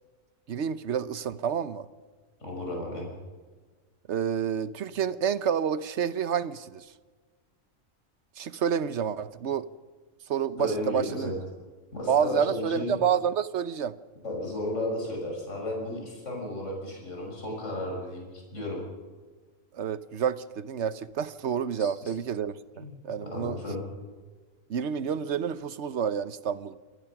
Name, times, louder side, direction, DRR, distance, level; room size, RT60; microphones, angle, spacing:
voice 1, 0.5-1.9 4.1-6.8 8.4-9.7 10.3-11.3 12.1-14.0 19.7-23.6 24.7-26.8, right 8 dB, 60° right, 15 dB, 1.1 m, -29 dB
voice 2, 2.4-3.1 10.6-11.3 11.9-12.9 14.2-18.8 21.8-21.9 22.7-22.9 23.2-23.8, left 1 dB, 60° left, -1 dB, 6.6 m, -33 dB
27.0 x 19.5 x 6.0 m, 1.4 s
omnidirectional pair, 1.4 m